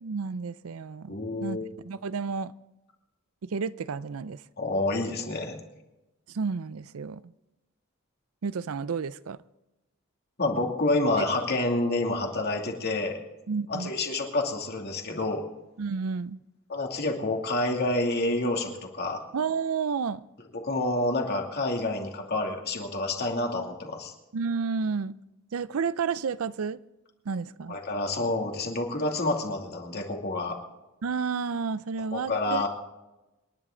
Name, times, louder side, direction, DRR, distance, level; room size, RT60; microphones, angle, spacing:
voice 1, 0.0-1.1 1.4-1.6 1.8-2.5 3.4-4.4 6.3-7.2 8.4-9.4 11.2-11.3 13.5-13.9 15.8-16.4 19.3-20.2 24.3-25.2 25.5-26.8 27.3-27.8 31.0-32.7, right 5 dB, 75° right, 0.5 m, -31 dB
voice 2, 1.1-1.7 4.6-5.6 10.4-13.2 13.7-15.4 16.7-19.2 20.6-24.1 27.7-30.6 32.1-32.7, left 2 dB, 45° left, 2.6 m, -28 dB
27.5 x 11.0 x 3.8 m
head